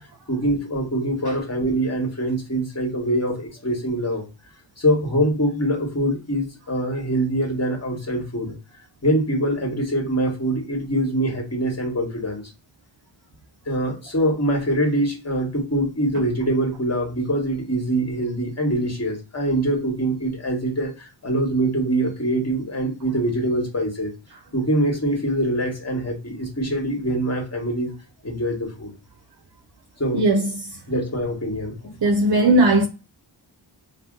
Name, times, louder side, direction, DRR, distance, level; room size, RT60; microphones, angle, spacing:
voice 1, 0.3-4.3 4.8-8.5 9.0-12.4 13.7-24.1 24.5-27.9 28.2-28.9 30.0-30.2 30.9-31.8, right 1 dB, 35° left, 1.3 m, -24 dB
voice 2, 30.1-30.7 32.0-32.9, right 2 dB, 55° right, 0.6 m, -18 dB
2.6 x 2.1 x 3.6 m
cardioid pair, 50°, 46 cm